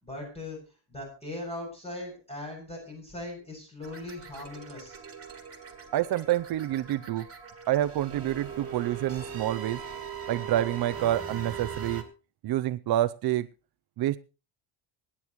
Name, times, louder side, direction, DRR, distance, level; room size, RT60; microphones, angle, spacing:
voice 1, 0.0-0.6 0.9-5.0, left 1 dB, 15° left, 0 dB, 6.8 m, -39 dB
sound 1, 3.8-12.0, right 7 dB, 30° right, 2.8 m, -40 dB
voice 2, 5.9-7.2 7.7-9.8 10.3-12.0 12.4-13.5 14.0-14.2, right 13 dB, 55° right, 12 dB, 0.6 m, -27 dB
24.0 x 10.0 x 3.1 m, 0.33 s
cardioid pair, 140°, 47 cm